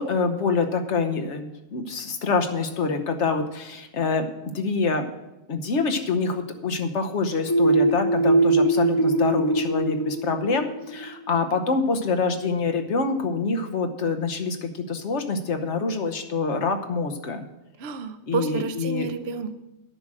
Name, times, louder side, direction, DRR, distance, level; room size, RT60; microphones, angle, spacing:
voice 1, 0.0-5.1 5.5-17.4 18.3-19.1, left 4 dB, 80° left, 6 dB, 1.3 m, -26 dB
sound 1, 7.5-11.1, right 2 dB, 25° left, 0.9 m, -21 dB
voice 2, 17.8-19.6, right 5 dB, 65° right, 9 dB, 0.9 m, -30 dB
9.6 x 6.2 x 7.6 m, 0.99 s
omnidirectional pair, 1.2 m